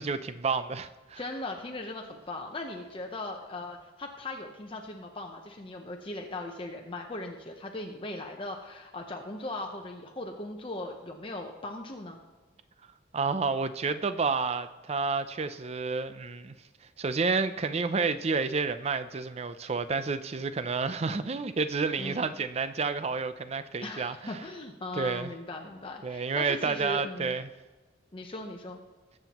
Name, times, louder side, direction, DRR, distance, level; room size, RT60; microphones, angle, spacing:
voice 1, 0.0-1.2 13.1-16.6 17.0-24.3 25.0-25.3 26.0-27.5, right 4 dB, 35° right, 0.5 m, -30 dB
voice 2, 1.2-12.2 22.0-22.4 23.8-27.3 28.1-28.8, left 2 dB, 30° left, 0.8 m, -39 dB
20.5 x 7.7 x 3.0 m
head